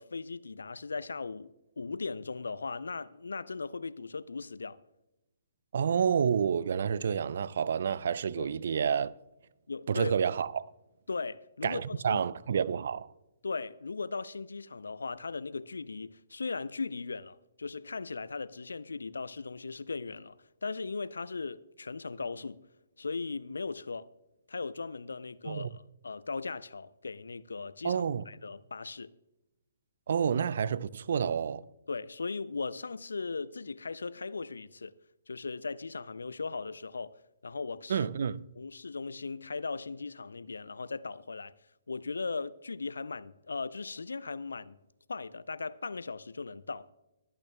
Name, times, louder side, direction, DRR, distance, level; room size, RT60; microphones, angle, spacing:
voice 1, 0.0-4.8 8.4-8.5 9.7-10.2 11.1-12.2 13.4-20.4 20.6-22.6 23.0-24.1 24.5-29.1 31.9-35.0 35.3-38.1 38.6-41.5 41.9-44.8 45.1-46.9, left 4 dB, 75° left, 0.4 m, -38 dB
voice 2, 5.7-9.1 9.9-10.6 11.6-13.1 25.5-25.7 27.8-28.2 30.1-31.7 37.9-38.5, right 7 dB, 60° right, 0.4 m, -29 dB
23.0 x 9.0 x 2.2 m
figure-of-eight pair, 130°, 0 cm